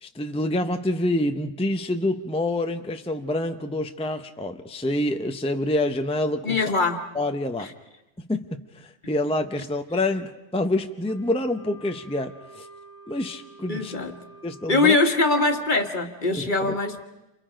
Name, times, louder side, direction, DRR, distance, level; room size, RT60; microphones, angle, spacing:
voice 1, 0.0-6.6 7.1-7.7 8.3-12.7 13.1-13.9 14.4-15.0 16.4-16.8, left 1 dB, 10° left, 6 dB, 0.3 m, -27 dB
voice 2, 6.4-7.0 7.6-7.7 13.7-14.2 14.7-17.0, left 3 dB, 30° left, 6 dB, 1.6 m, -22 dB
Wind instrument woodwind instrument, 11.0-15.5, right 2 dB, 25° right, 3.0 m, -48 dB
30.0 x 27.5 x 5.1 m, 0.99 s
omnidirectional pair, 1.6 m